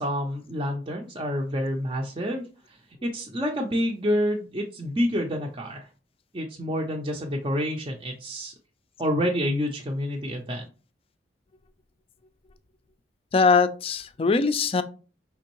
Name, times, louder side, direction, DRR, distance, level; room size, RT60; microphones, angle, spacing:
voice 1, 0.0-5.9 6.3-8.5 9.0-10.7, equal, 25° right, 0 dB, 0.5 m, -28 dB
voice 2, 13.3-14.8, left 4 dB, 30° left, 12 dB, 0.4 m, -21 dB
5.2 x 3.4 x 2.9 m, 0.36 s
head